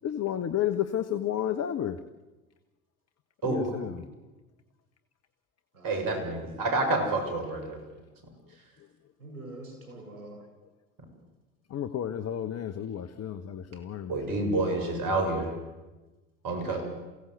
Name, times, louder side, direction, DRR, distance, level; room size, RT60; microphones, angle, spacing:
voice 1, 0.0-2.0 3.4-3.9 11.7-14.1, left 10 dB, 35° left, 9 dB, 1.3 m, -31 dB
voice 2, 3.4-3.7 5.8-7.8 14.1-15.5 16.4-16.8, right 2 dB, 50° right, 6 dB, 7.0 m, -28 dB
voice 3, 5.7-6.6 9.2-10.4, right 1 dB, 85° right, 2 dB, 7.7 m, -45 dB
28.0 x 16.5 x 8.1 m, 1.2 s
hypercardioid pair, 70°, 42 cm